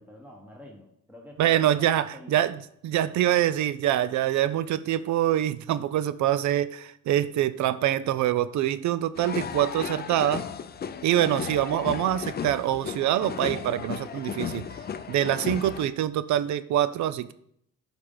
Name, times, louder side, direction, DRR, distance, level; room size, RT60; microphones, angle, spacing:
voice 1, 0.0-2.5, left 1 dB, 5° right, -1 dB, 1.2 m, -48 dB
voice 2, 1.4-2.6 2.8-10.4 11.0-14.6 15.1-17.3, right 12 dB, 70° right, 15 dB, 0.5 m, -25 dB
sound 1, 9.2-15.8, left 7 dB, 35° left, 0.5 m, -35 dB
9.5 x 5.0 x 3.9 m, 0.71 s
cardioid pair, 90°, 30 cm